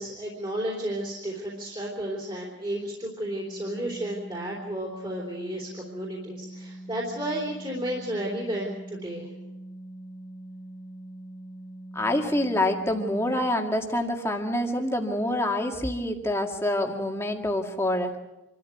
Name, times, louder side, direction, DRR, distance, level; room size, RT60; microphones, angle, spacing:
voice 1, 0.0-9.3, right 1 dB, 25° right, -3 dB, 3.4 m, -32 dB
Organ, 3.2-13.8, right 1 dB, 75° left, 3.8 m, -43 dB
voice 2, 11.9-18.2, left 1 dB, 15° left, 2 dB, 2.0 m, -26 dB
27.0 x 13.0 x 9.1 m, 1.0 s
head